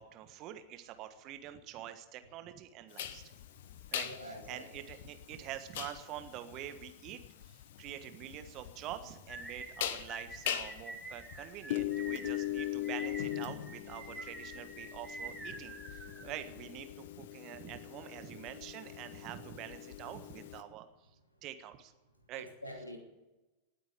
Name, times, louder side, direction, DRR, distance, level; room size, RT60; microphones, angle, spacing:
voice 1, 0.0-3.2 3.9-20.9 21.4-21.9 22.3-22.5, right 12 dB, 40° right, 10 dB, 1.4 m, -46 dB
sound 1, 3.0-20.6, left 12 dB, 55° left, 1.0 m, -41 dB
voice 2, 4.0-4.7 22.3-23.0, left 1 dB, 85° left, 4 dB, 2.9 m, -46 dB
sound 2, 9.3-16.6, right 2 dB, ahead, 2.9 m, -47 dB
19.0 x 8.6 x 8.6 m, 1.1 s
figure-of-eight pair, 90°, 0 cm